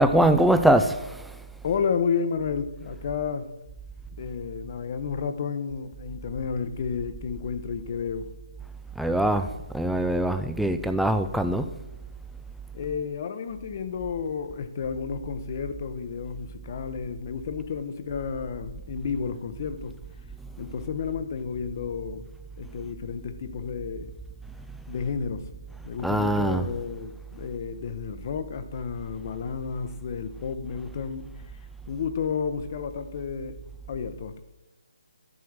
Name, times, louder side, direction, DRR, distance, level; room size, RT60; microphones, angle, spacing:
voice 1, 0.0-1.4 9.0-11.8 26.0-26.7, right 1 dB, ahead, 0.3 m, -23 dB
voice 2, 1.6-3.5 4.2-8.3 12.7-19.9 20.6-22.2 22.6-24.1 24.9-25.5 25.8-31.3 31.9-33.6 33.9-34.4, left 6 dB, 40° left, 0.8 m, -31 dB
11.0 x 4.6 x 6.5 m
hypercardioid pair, 160°, 3 cm